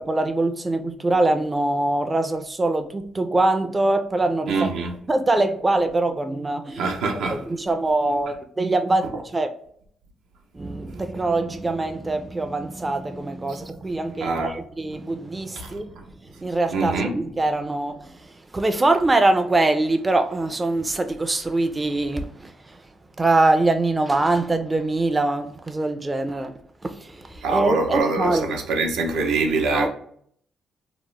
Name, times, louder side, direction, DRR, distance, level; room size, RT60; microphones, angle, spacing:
voice 1, 0.0-4.7 5.1-6.9 7.3-9.5 10.5-16.0 16.4-22.8 23.2-28.6 29.7-29.9, right 2 dB, 20° right, 0.3 m, -23 dB
voice 2, 4.5-4.9 6.8-7.4 14.2-14.5 15.6-15.7 16.7-17.1 27.4-29.9, right 3 dB, 85° right, 0.6 m, -24 dB
2.9 x 2.0 x 3.1 m
cardioid pair, 90°, 0 cm